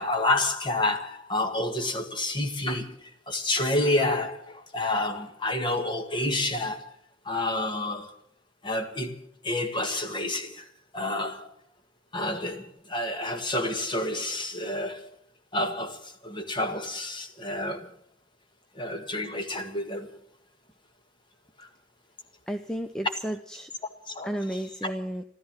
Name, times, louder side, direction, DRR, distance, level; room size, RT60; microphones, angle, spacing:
voice 1, 0.0-6.9 7.3-8.2 8.6-9.2 9.4-10.7 10.9-11.5 12.1-15.1 15.5-17.9 18.8-20.1 21.6-21.7 24.1-24.9, left 2 dB, 25° left, 1.7 m, -29 dB
voice 2, 22.5-23.7 24.2-25.2, right 1 dB, 5° left, 0.6 m, -32 dB
14.0 x 13.5 x 7.4 m
head